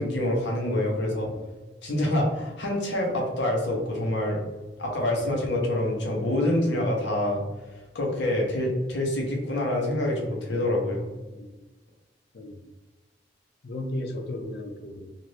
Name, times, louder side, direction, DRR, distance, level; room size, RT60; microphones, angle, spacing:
voice 1, 0.0-1.3 1.8-4.4 4.8-7.4 7.9-11.0, left 1 dB, 85° left, -1 dB, 0.9 m, -26 dB
voice 2, 1.0-1.4 5.1-5.3 11.3-11.5 12.3-12.6 13.6-15.1, left 1 dB, 60° left, 3 dB, 0.5 m, -35 dB
2.7 x 2.5 x 3.2 m, 1.2 s
head